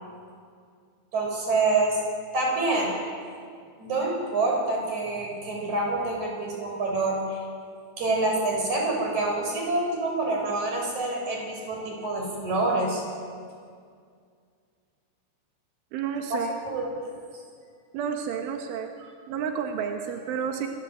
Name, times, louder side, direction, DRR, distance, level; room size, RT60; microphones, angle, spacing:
voice 1, 1.1-2.0 2.3-3.0 3.8-7.4 8.0-13.0 16.3-16.4 16.6-17.1, right 2 dB, 40° right, 0 dB, 8.0 m, -27 dB
voice 2, 15.9-16.5 17.9-18.9 19.3-20.7, right 7 dB, 90° right, 3 dB, 4.1 m, -30 dB
28.5 x 23.0 x 8.2 m, 2.2 s
omnidirectional pair, 5.4 m